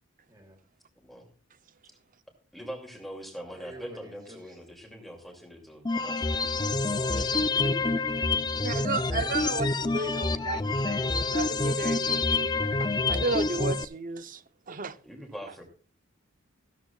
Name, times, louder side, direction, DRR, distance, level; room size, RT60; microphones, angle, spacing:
voice 1, 0.3-0.6 3.6-4.6 7.1-8.7, equal, 20° right, 4.9 m, -49 dB
voice 2, 2.5-7.9 15.0-15.6, equal, ahead, 2.6 m, -43 dB
sound 1, 5.9-13.9, left 3 dB, 20° left, 0.6 m, -27 dB
voice 3, 8.6-14.4 14.7-15.0, right 3 dB, 45° right, 0.8 m, -33 dB
15.5 x 13.0 x 2.4 m
head